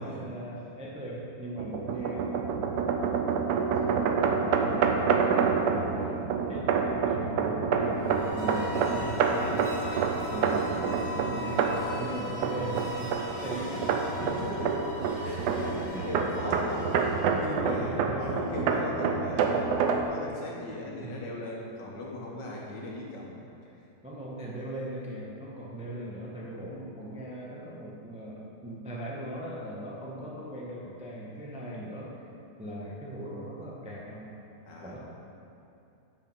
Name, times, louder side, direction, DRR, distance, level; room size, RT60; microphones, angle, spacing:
voice 1, 0.0-3.1 3.8-4.1 4.4-9.7 10.3-11.7 12.0-13.1 13.4-14.3 15.9-16.1 17.3-18.7 20.9-21.2 22.4-22.6 24.0-32.1 32.6-34.3 34.8-35.0, right 1 dB, 5° right, -4 dB, 0.5 m, -39 dB
sound 1, 1.6-20.0, right 5 dB, 75° right, 1.1 m, -28 dB
sound 2, 7.9-17.8, left 1 dB, 35° right, 0.8 m, -40 dB
voice 2, 8.6-9.0 10.2-10.5 14.2-14.8 15.2-23.4 34.7-35.0, left 1 dB, 75° left, -2 dB, 1.8 m, -38 dB
7.2 x 5.3 x 5.3 m, 2.7 s
omnidirectional pair, 1.9 m